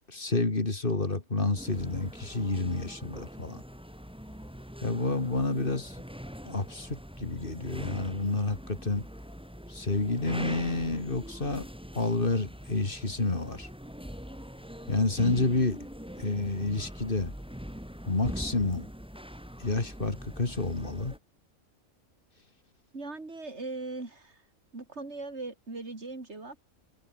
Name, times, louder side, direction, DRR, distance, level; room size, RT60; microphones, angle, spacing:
voice 1, 0.1-3.6 4.8-6.0 6.4-9.1 9.7-11.7 11.9-13.7 14.9-15.9 16.2-17.3 18.1-18.9 19.6-21.1, left 2 dB, 40° left, 2.9 m, -29 dB
sound 1, 1.6-21.2, equal, 5° right, 4.8 m, -43 dB
voice 2, 22.9-24.4 24.7-26.6, right 3 dB, 55° right, 3.9 m, -39 dB
omnidirectional pair, 1.4 m